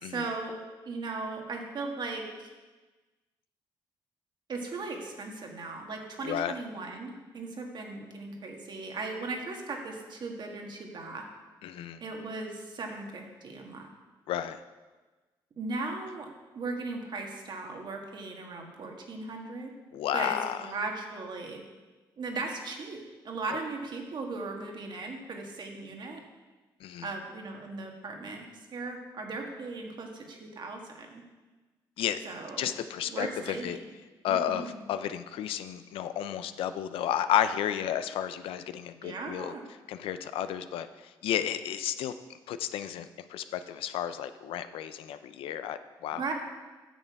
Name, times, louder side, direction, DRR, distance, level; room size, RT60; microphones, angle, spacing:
voice 1, 0.0-0.5 0.8-2.5 4.5-11.2 12.0-13.9 15.6-16.3 16.5-19.7 20.1-21.6 22.2-26.2 27.0-31.2 32.2-32.7 33.0-33.8 34.3-34.8 39.0-39.6 46.1-46.3, right 3 dB, 55° right, 2 dB, 1.6 m, -37 dB
voice 2, 6.2-6.5 11.6-12.0 14.3-14.6 19.9-20.6 23.5-23.6 26.8-27.1 32.0-32.2 32.6-33.8 34.2-39.5 39.9-42.1 42.5-46.2, left 10 dB, 80° left, 11 dB, 0.5 m, -32 dB
9.0 x 6.7 x 4.7 m, 1.3 s
cardioid pair, 75°, 9 cm